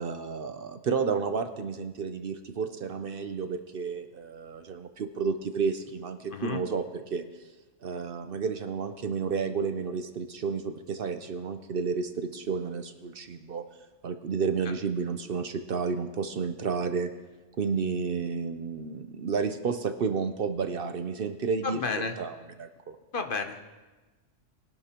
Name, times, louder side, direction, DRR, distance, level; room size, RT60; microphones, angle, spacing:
voice 1, 0.0-7.2 7.8-13.6 14.0-17.1 17.6-21.8 22.2-23.0, right 5 dB, 55° right, 9 dB, 0.8 m, -31 dB
voice 2, 6.3-6.6 21.6-22.2 23.1-23.7, left 4 dB, 50° left, 6 dB, 0.9 m, -32 dB
21.5 x 11.0 x 2.9 m, 1.2 s
omnidirectional pair, 1.2 m